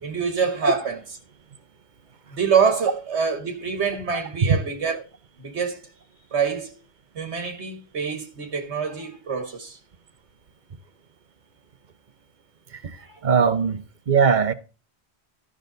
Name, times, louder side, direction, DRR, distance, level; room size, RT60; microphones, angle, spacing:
voice 1, 0.0-1.0 2.3-5.0 5.4-5.8 6.3-6.7 7.1-9.8 13.0-13.2, right 6 dB, 90° right, 1.7 m, -25 dB
voice 2, 13.2-14.5, right 5 dB, 45° right, 0.9 m, -20 dB
14.5 x 6.2 x 3.9 m
omnidirectional pair, 1.1 m